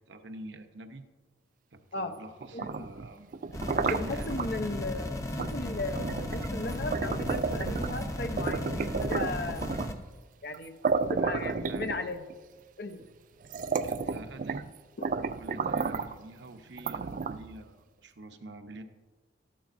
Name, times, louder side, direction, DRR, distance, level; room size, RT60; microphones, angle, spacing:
voice 1, 0.1-1.0 1.7-3.3 3.8-4.5 11.2-11.9 13.8-14.7 15.3-18.8, right 2 dB, 70° right, 6 dB, 0.9 m, -47 dB
sound 1, 2.4-4.5 5.4-5.6 5.9-8.0 8.4-10.0 10.5-10.6 10.8-12.3 13.0-13.1 13.4-14.7 15.0-16.2 16.8-17.6, right 5 dB, 45° right, 0.3 m, -32 dB
voice 2, 2.5-2.9 3.8-9.7 10.4-10.8 11.1-12.2 12.8-13.0 15.0-15.1, left 2 dB, 55° left, 8 dB, 0.7 m, -36 dB
sound 2, 3.5-9.9, left 1 dB, 15° left, 0.7 m, -35 dB
13.0 x 11.5 x 2.6 m, 1.3 s
head